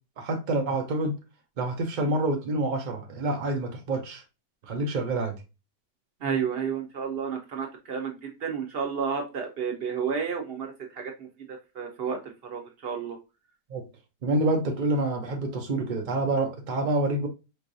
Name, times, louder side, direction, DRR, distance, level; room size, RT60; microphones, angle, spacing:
voice 1, 0.2-1.1 1.6-4.2 4.7-5.4 13.7-13.8 14.2-17.3, right 2 dB, 75° right, 0.4 m, -27 dB
voice 2, 6.2-13.2, right 6 dB, 45° right, 0.8 m, -31 dB
4.4 x 3.2 x 2.6 m
omnidirectional pair, 1.9 m